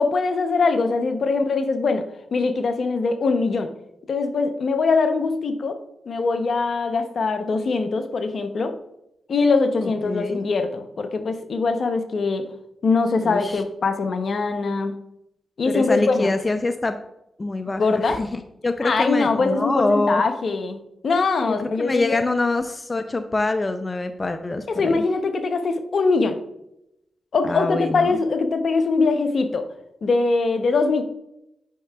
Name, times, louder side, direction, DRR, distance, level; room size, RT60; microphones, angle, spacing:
voice 1, 0.0-2.0 2.3-3.7 4.1-5.8 6.1-8.7 9.3-12.4 12.8-14.9 15.6-16.3 17.8-18.2 18.8-20.8 21.0-22.2 24.7-26.4 27.3-29.6 30.0-31.0, left 4 dB, 65° left, 7 dB, 0.8 m, -22 dB
voice 2, 9.8-10.4 13.2-13.6 15.7-17.0 17.4-20.2 21.8-25.0 27.4-28.2, left 2 dB, 35° left, 9 dB, 0.5 m, -25 dB
8.3 x 5.8 x 2.3 m, 0.84 s
cardioid pair, 50°, 0 cm